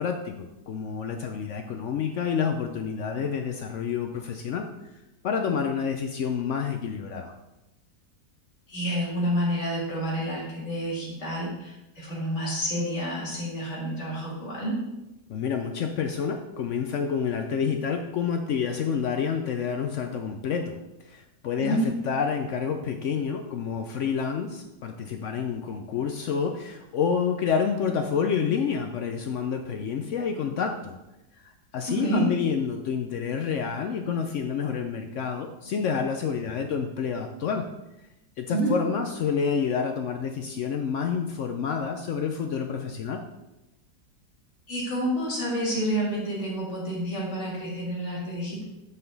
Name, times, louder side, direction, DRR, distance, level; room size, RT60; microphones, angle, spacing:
voice 1, 0.0-4.7 5.2-7.3 15.3-20.8 21.1-30.9 31.4-37.7 38.4-43.2, left 6 dB, 80° left, 5 dB, 0.6 m, -28 dB
voice 2, 8.7-14.8 21.6-21.9 31.9-32.2 38.5-38.7 44.7-48.6, right 1 dB, 40° left, -6 dB, 2.8 m, -29 dB
7.7 x 5.7 x 3.9 m, 0.96 s
omnidirectional pair, 1.9 m